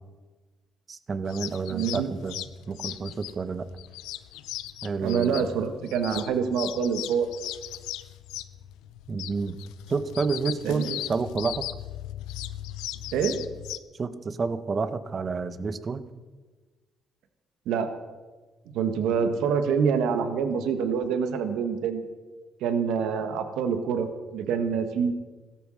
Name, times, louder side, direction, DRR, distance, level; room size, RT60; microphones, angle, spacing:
voice 1, 0.9-3.7 4.8-5.4 9.1-9.6 9.9-11.7 14.0-16.0, right 4 dB, 40° right, 13 dB, 1.3 m, -29 dB
sound 1, 1.2-13.8, left 14 dB, 90° left, 0.7 m, -38 dB
voice 2, 1.7-2.1 5.0-7.3 10.6-11.0 13.1-13.3 17.7-17.9 18.7-22.0 22.6-25.1, right 6 dB, 85° right, 8 dB, 1.5 m, -26 dB
16.5 x 13.0 x 6.5 m, 1.3 s
supercardioid pair, 75°, 0 cm